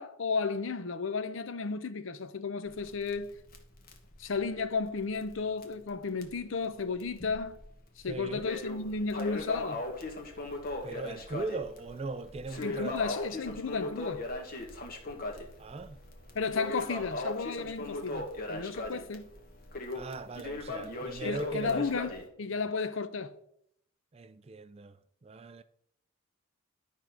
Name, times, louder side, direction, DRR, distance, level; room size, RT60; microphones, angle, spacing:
voice 1, 0.0-3.3 4.2-7.6 8.0-9.8 12.6-14.2 16.3-19.3 21.2-23.3, left 4 dB, 65° left, 0.6 m, -33 dB
Crackle, 2.7-5.4 5.6-5.7 6.2-6.3 7.0-7.6 8.0-22.3, left 2 dB, 45° left, 1.2 m, -38 dB
voice 2, 8.1-8.5 10.8-13.0 15.6-16.0 19.9-21.9 22.5-22.6 24.1-25.6, right 3 dB, 30° right, 0.3 m, -39 dB
11.5 x 3.8 x 5.9 m
head